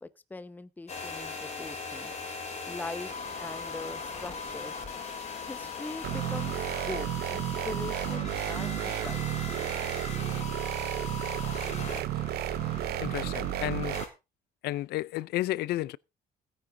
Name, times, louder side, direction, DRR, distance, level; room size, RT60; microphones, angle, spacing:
voice 1, 0.0-2.1 2.7-4.8 5.5-9.3, left 2 dB, 10° left, 0.8 m, -41 dB
sound 1, 0.9-14.1, left 4 dB, 40° left, 6.0 m, -39 dB
sound 2, 6.0-14.0, right 15 dB, 70° right, 0.7 m, -32 dB
voice 2, 13.0-14.0 14.6-16.0, left 15 dB, 75° left, 0.5 m, -32 dB
16.0 x 9.8 x 3.8 m
cardioid pair, 110°, 17 cm